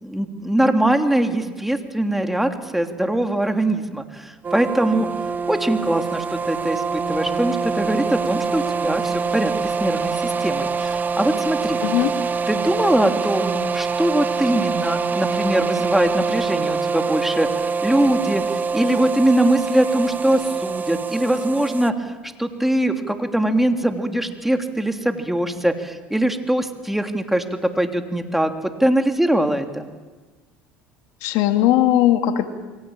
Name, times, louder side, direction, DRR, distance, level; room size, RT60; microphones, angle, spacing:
voice 1, 0.0-5.1 5.5-11.8 12.5-22.1 22.4-28.5 28.8-29.9, right 1 dB, 5° right, 5 dB, 3.1 m, -22 dB
sound 1, 4.4-21.9, right 5 dB, 30° right, 1.2 m, -25 dB
voice 2, 11.8-12.1 31.2-32.5, left 13 dB, 70° left, 7 dB, 2.5 m, -18 dB
28.5 x 23.0 x 8.9 m, 1.3 s
supercardioid pair, 85°, 6 cm